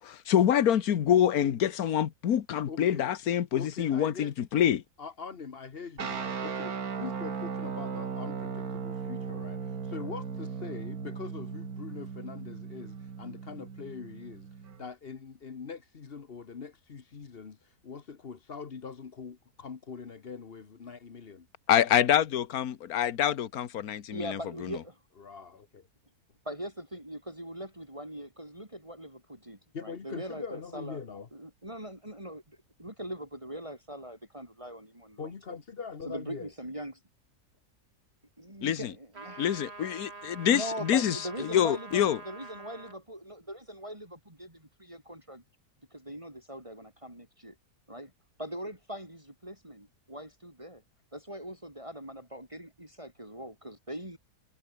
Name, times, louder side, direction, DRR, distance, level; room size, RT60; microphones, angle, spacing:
voice 1, 0.0-4.8 21.7-24.7 38.6-38.9 39.4-42.2, left 10 dB, 70° left, 1.6 m, -26 dB
voice 2, 2.7-3.1 3.5-4.3 5.0-21.5 25.2-25.9 29.7-31.3 35.2-36.5, left 5 dB, 40° left, 1.4 m, -43 dB
sound 1, 6.0-14.9, right 6 dB, 70° right, 2.3 m, -37 dB
voice 3, 24.1-25.0 26.5-31.0 31.3-35.3 36.1-37.0 38.4-39.6 40.5-45.4 45.9-47.6 47.9-48.1 48.4-50.8 51.1-54.2, equal, 20° right, 5.3 m, -41 dB
sound 2, 39.1-43.0, right 4 dB, 40° right, 2.3 m, -46 dB
omnidirectional pair, 1.6 m